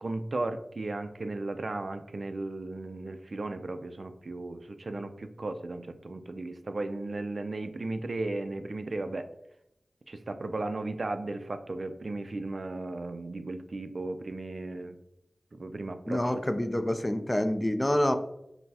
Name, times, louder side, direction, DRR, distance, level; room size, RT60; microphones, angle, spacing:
voice 1, 0.0-9.3 10.1-15.0 15.5-16.4, right 2 dB, 60° right, 9 dB, 0.3 m, -35 dB
voice 2, 16.1-18.2, left 1 dB, 20° left, 8 dB, 0.3 m, -27 dB
5.5 x 2.0 x 2.7 m, 0.80 s
wide cardioid pair, 85°, 0 cm